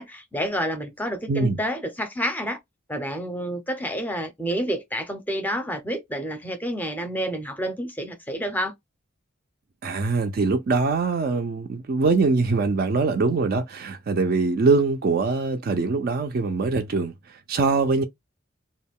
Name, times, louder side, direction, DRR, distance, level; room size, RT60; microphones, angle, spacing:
voice 1, 0.0-2.6 2.9-8.7, equal, 10° left, 0.5 m, -29 dB
voice 2, 1.3-1.6 9.8-18.0, right 3 dB, 45° right, 0.3 m, -23 dB
2.2 x 2.1 x 3.5 m
head